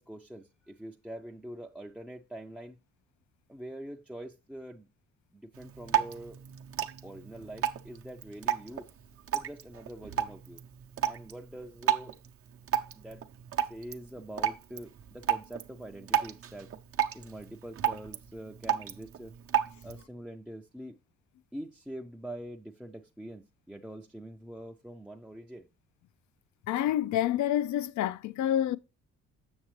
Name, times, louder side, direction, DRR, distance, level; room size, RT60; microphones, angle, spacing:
voice 1, 0.0-2.8 3.5-4.9 5.3-6.4 7.0-8.9 9.3-10.6 11.0-12.2 12.9-13.2 13.6-16.7 17.1-19.3 19.8-21.0 21.5-25.7, right 1 dB, 5° right, 0.5 m, -44 dB
Drip, 5.5-20.0, right 10 dB, 50° right, 0.7 m, -34 dB
voice 2, 26.7-28.8, left 11 dB, 70° left, 0.5 m, -28 dB
7.3 x 6.5 x 3.2 m
cardioid pair, 90°, 30 cm